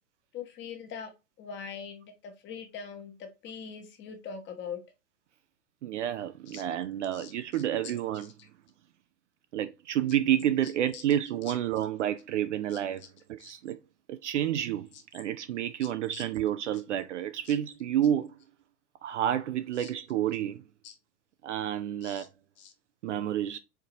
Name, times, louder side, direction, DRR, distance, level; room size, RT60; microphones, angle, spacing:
voice 1, 0.3-1.1 1.4-4.8 6.5-6.6 7.1-7.3 10.9-11.0 13.4-13.5 16.1-16.2 17.5-17.6 19.8-19.9 20.8-20.9 22.0-22.3 22.6-22.7, left 6 dB, 25° left, 1.0 m, -42 dB
voice 2, 5.8-8.3 9.5-13.8 14.1-18.4 19.0-20.6 21.4-22.3 23.0-23.6, right 11 dB, 50° right, 0.5 m, -30 dB
4.6 x 3.8 x 2.7 m
hypercardioid pair, 115°, 48 cm